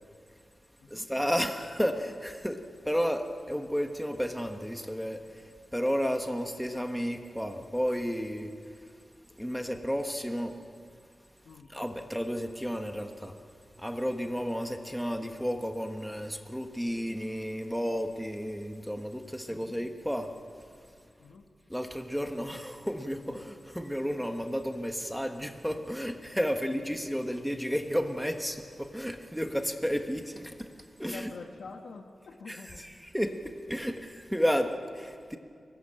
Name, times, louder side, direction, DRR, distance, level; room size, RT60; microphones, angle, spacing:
voice 1, 0.9-8.9 9.3-10.6 11.7-13.4 13.8-20.3 21.7-31.3 32.5-35.4, equal, ahead, 5 dB, 1.3 m, -32 dB
voice 2, 19.5-19.8 21.2-21.5 26.4-26.6 31.1-32.8, left 4 dB, 90° left, 3 dB, 1.7 m, -46 dB
23.5 x 19.5 x 8.9 m, 2.2 s
wide cardioid pair, 165°, 0 cm